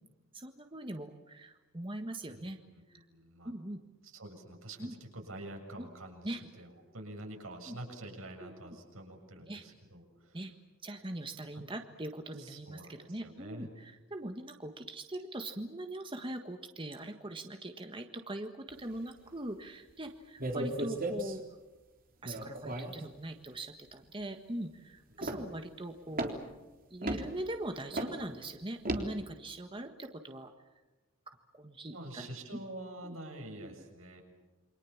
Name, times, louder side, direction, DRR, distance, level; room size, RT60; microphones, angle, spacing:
voice 1, 0.3-2.6 2.9-3.0 3.4-3.8 4.8-4.9 5.8-5.9 6.2-6.4 7.7-7.8 8.4-8.5 9.5-9.6 10.3-10.5 10.8-21.4 22.2-26.3 26.9-30.5 31.3-32.3 32.5-32.6 33.0-33.1 33.6-33.7, right 1 dB, 25° right, 6 dB, 1.5 m, -41 dB
voice 2, 2.3-3.5 4.0-10.4 11.5-11.7 12.4-13.7 31.9-34.2, right 1 dB, 80° right, 3 dB, 7.1 m, -47 dB
sound 1, 20.4-21.4 22.2-23.0 25.2-25.6 26.1-26.5 27.0-27.3 27.9-28.2 28.8-29.1, right 1 dB, 40° right, 3.6 m, -35 dB
28.5 x 25.5 x 7.3 m, 1.1 s
head